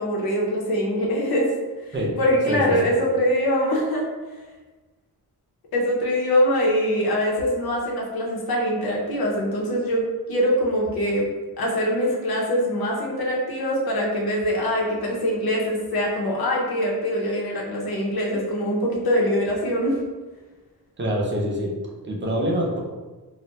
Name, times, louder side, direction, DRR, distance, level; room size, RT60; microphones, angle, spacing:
voice 1, 0.0-1.5 1.9-4.1 5.7-11.3 11.6-20.0, equal, 70° left, -3 dB, 0.7 m, -23 dB
voice 2, 2.5-2.9 21.0-21.8 22.0-22.8, equal, 30° right, -2 dB, 0.5 m, -25 dB
2.3 x 2.1 x 3.9 m, 1.3 s
wide cardioid pair, 175°, 38 cm